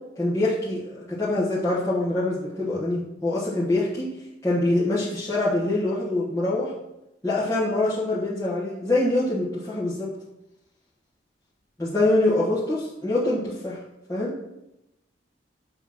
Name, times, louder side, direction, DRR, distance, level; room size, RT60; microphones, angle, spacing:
voice 1, 0.2-4.1 4.4-6.7 7.2-10.1 11.8-13.8 14.1-14.3, left 2 dB, 15° left, -11 dB, 1.5 m, -24 dB
7.5 x 3.4 x 5.8 m, 0.90 s
head